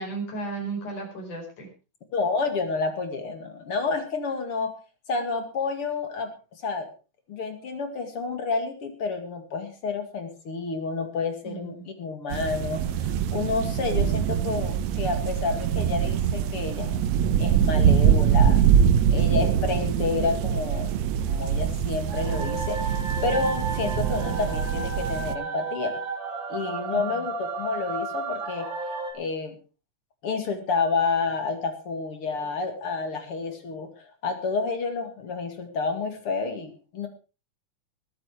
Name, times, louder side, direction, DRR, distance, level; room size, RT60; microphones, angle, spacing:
voice 1, 0.0-1.7 11.4-11.8 26.9-27.2, right 3 dB, 75° left, 1 dB, 6.6 m, -34 dB
voice 2, 2.1-4.7 5.1-6.9 7.3-17.0 17.4-18.6 19.1-20.9 21.3-23.0 23.2-26.0 26.5-28.7 29.1-29.6 30.2-37.1, left 4 dB, 50° left, 6 dB, 2.9 m, -29 dB
sound 1, 12.3-25.3, right 8 dB, 70° right, 1.9 m, -23 dB
sound 2, 22.1-29.1, right 3 dB, 40° right, 3.0 m, -33 dB
21.5 x 8.7 x 4.6 m, 0.34 s
omnidirectional pair, 3.5 m